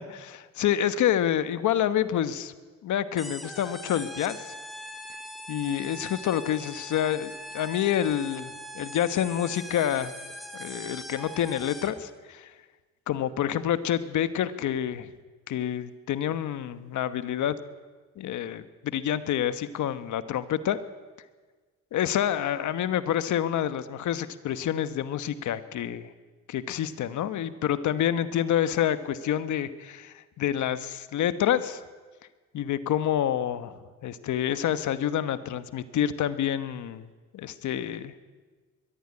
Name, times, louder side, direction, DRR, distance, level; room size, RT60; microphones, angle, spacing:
voice 1, 0.3-2.5 2.8-4.5 5.5-10.1 10.5-12.5 13.1-15.1 15.5-17.6 18.2-20.8 21.9-26.1 26.5-31.8 32.5-38.1, left 10 dB, 75° left, 12 dB, 1.2 m, -28 dB
sound 1, 3.2-12.1, equal, ahead, 3.5 m, -41 dB
22.5 x 14.0 x 9.8 m, 1.4 s
cardioid pair, 90°, 30 cm